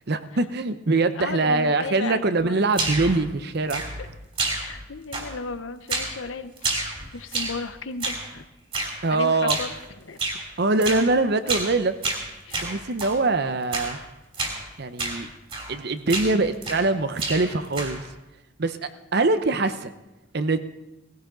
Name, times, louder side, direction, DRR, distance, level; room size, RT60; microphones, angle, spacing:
voice 1, 0.1-3.8 9.0-9.6 10.6-11.9 12.6-14.0 14.8-15.3 15.7-18.0 18.6-18.8 19.1-19.9 20.3-20.6, right 3 dB, 55° right, 11 dB, 0.8 m, -23 dB
voice 2, 1.1-2.6 3.0-3.2 4.0-4.1 4.5-6.5 6.8-8.5 9.1-10.4 12.4-12.9, left 4 dB, 90° left, 11 dB, 0.8 m, -35 dB
sound 1, 2.7-3.2 3.7-4.1 4.4-4.9 5.1-5.5 5.9-6.2 6.6-7.6 8.0-8.3 8.7-9.0 9.5-9.8 10.2-10.4 10.8-11.1 11.5-11.7 12.0-13.2 13.7-14.0 14.3-14.6 15.0-15.2 15.5-15.8 16.1-16.9 17.2-18.1, right 3 dB, 30° right, 3.0 m, -29 dB
18.5 x 16.0 x 3.9 m, 1.0 s
head